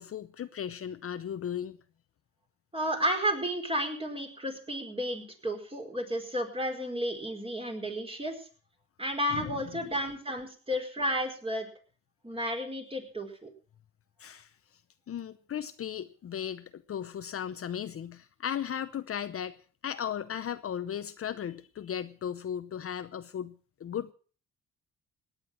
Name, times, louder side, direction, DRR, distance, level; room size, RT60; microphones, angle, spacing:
voice 1, 0.0-1.8 9.3-9.9 14.2-14.8 15.1-19.6 19.8-24.1, left 9 dB, 50° left, 0.8 m, -36 dB
voice 2, 2.7-8.5 9.0-11.7 12.2-13.5, equal, 20° right, 4.7 m, -32 dB
17.5 x 9.8 x 6.2 m
cardioid pair, 90°, 30 cm